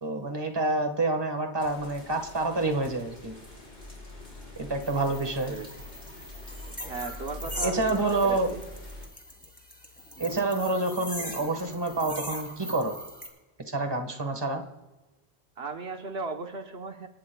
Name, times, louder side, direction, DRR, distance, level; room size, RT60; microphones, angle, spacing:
voice 1, 0.0-3.3 4.6-5.5 7.6-8.5 10.2-12.9 13.7-14.6, right 2 dB, 25° right, 4 dB, 1.5 m, -28 dB
sound 1, 1.6-9.1, left 1 dB, 65° left, 5.0 m, -44 dB
sound 2, 4.8-13.3, equal, 10° left, 2.8 m, -41 dB
voice 2, 6.8-8.6 15.6-17.1, right 3 dB, 70° right, 4 dB, 1.3 m, -36 dB
29.0 x 17.0 x 2.3 m, 1.1 s
omnidirectional pair, 1.1 m